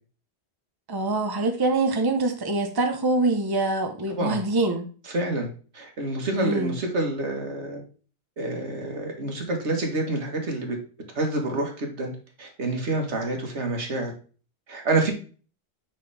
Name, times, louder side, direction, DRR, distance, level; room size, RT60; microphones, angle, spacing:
voice 1, 0.9-4.9 6.3-6.7, right 2 dB, 20° right, 0.9 m, -24 dB
voice 2, 4.1-4.4 5.1-5.5 5.7-7.8 8.4-10.8 11.2-12.1 12.4-14.1 14.7-15.1, right 2 dB, 80° right, 1.8 m, -27 dB
6.2 x 5.8 x 3.4 m
omnidirectional pair, 1.2 m